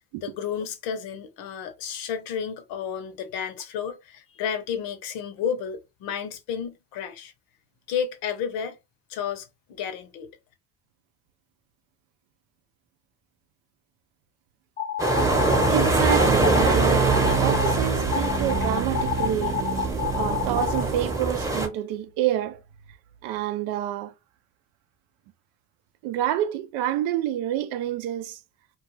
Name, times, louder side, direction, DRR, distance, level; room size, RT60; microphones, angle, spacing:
voice 1, 0.2-7.3 7.9-8.8 9.1-10.3, left 7 dB, 80° left, 0.8 m, -32 dB
sound 1, 14.8-15.7 16.1-16.8 17.1-17.7 18.1-20.8, left 8 dB, 25° left, 0.5 m, -28 dB
sound 2, 15.0-21.7, right 2 dB, 10° right, 0.8 m, -25 dB
sound 3, 15.2-21.1, right 5 dB, 40° right, 0.5 m, -28 dB
voice 2, 15.7-19.7 20.1-22.6 23.2-24.1 26.0-28.4, right 12 dB, 85° right, 0.5 m, -28 dB
2.4 x 2.3 x 3.0 m
supercardioid pair, 85°, 35 cm